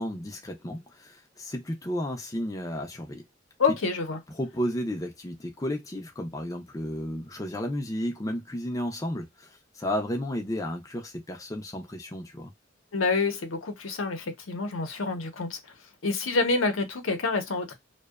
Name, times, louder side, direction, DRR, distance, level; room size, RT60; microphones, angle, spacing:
voice 1, 0.0-3.2 3.7-3.8 4.3-12.5, equal, 15° left, 0.4 m, -33 dB
voice 2, 3.6-4.2 12.9-15.6 16.0-17.7, left 4 dB, 85° left, 0.7 m, -27 dB
2.6 x 2.2 x 2.3 m
head